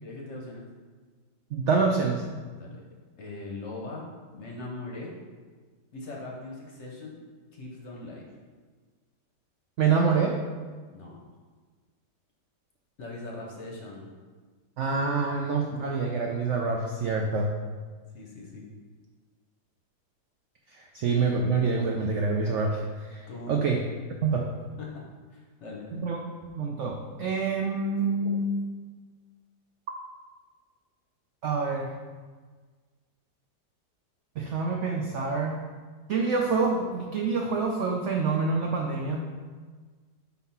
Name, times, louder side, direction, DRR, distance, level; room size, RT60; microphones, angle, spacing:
voice 1, 0.0-0.6 2.5-2.9 3.2-4.0 4.3-5.1 5.9-7.2 7.5-8.3 10.9-11.2 13.0-14.1 18.1-18.7 23.3-23.7 24.8-25.0 25.3-26.0, left 2 dB, 55° left, -1 dB, 0.9 m, -40 dB
voice 2, 1.5-2.2 9.8-10.3 14.8-17.5 20.8-22.8 23.1-23.2 23.5-23.8 24.2-24.5 25.9-26.2 26.5-28.6 31.4-31.9 34.4-35.6 36.1-39.2, right 4 dB, 85° right, 1 dB, 0.6 m, -26 dB
4.1 x 4.1 x 5.5 m, 1.4 s
omnidirectional pair, 1.8 m